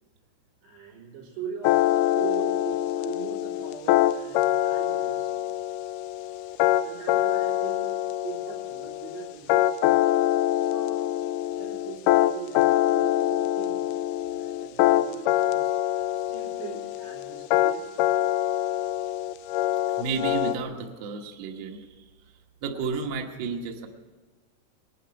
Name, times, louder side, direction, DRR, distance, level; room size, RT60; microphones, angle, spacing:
voice 1, 0.6-1.8 2.2-5.4 6.8-7.9 8.2-9.8 10.5-11.1 11.6-13.9 14.2-15.8 16.1-18.0, right 7 dB, 85° right, -3 dB, 5.6 m, -41 dB
sound 1, 1.6-20.5, left 14 dB, 80° left, 2.4 m, -24 dB
voice 2, 20.0-22.0 22.6-23.9, right 5 dB, 60° right, 2 dB, 1.9 m, -32 dB
20.0 x 12.0 x 5.8 m, 1.4 s
omnidirectional pair, 4.7 m